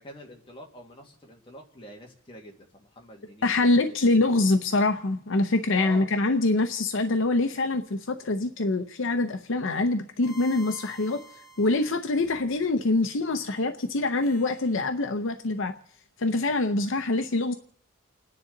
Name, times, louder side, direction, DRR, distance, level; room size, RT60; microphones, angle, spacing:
voice 1, 0.0-4.0 5.7-6.1, left 1 dB, 25° left, 2.0 m, -46 dB
voice 2, 3.4-11.2 11.6-15.7 16.2-17.5, left 2 dB, 60° left, 0.7 m, -25 dB
sound 1, 9.8-12.9 14.2-14.8, right 2 dB, 75° left, 2.0 m, -49 dB
29.5 x 10.0 x 3.9 m
head